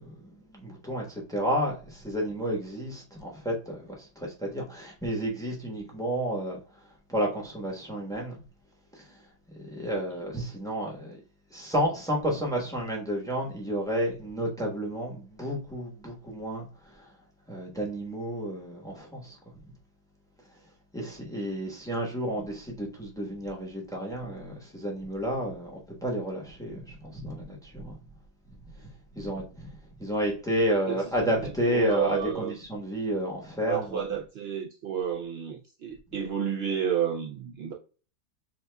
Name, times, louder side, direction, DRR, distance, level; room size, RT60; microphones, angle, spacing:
voice 1, 0.0-6.6 7.1-8.4 9.5-11.2 11.5-16.7 17.5-19.4 20.9-28.0 29.1-29.7 30.0-34.0, equal, 5° left, 0.9 m, -31 dB
voice 2, 30.7-32.6 33.6-37.7, right 8 dB, 85° right, 0.5 m, -31 dB
7.0 x 2.4 x 2.2 m
omnidirectional pair, 1.7 m